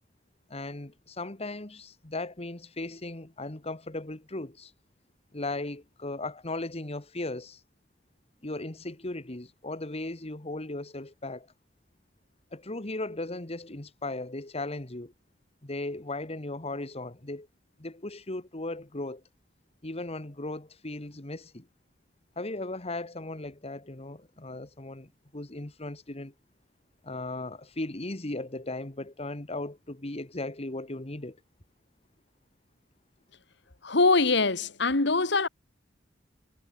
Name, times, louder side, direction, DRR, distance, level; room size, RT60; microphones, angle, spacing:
voice 1, 0.5-4.7 5.3-7.6 8.4-11.5 12.5-15.1 15.6-17.5 17.8-19.2 19.8-21.7 22.3-26.3 27.0-31.4, left 2 dB, 35° left, 1.8 m, -37 dB
voice 2, 33.8-35.5, left 3 dB, 65° left, 2.0 m, -23 dB
head